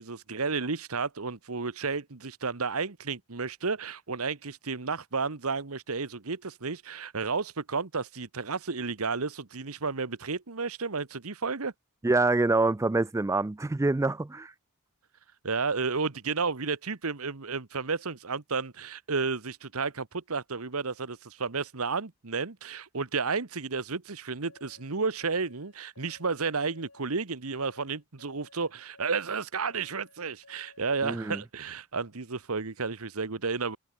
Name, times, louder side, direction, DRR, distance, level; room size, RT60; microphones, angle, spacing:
voice 1, 0.0-11.7 15.4-33.8, right 4 dB, 75° right, 1.3 m, -32 dB
voice 2, 12.0-14.5 31.0-31.4, right 2 dB, 15° right, 0.4 m, -26 dB
sound 1, 24.4-31.0, left 3 dB, 75° left, 7.2 m, -58 dB
head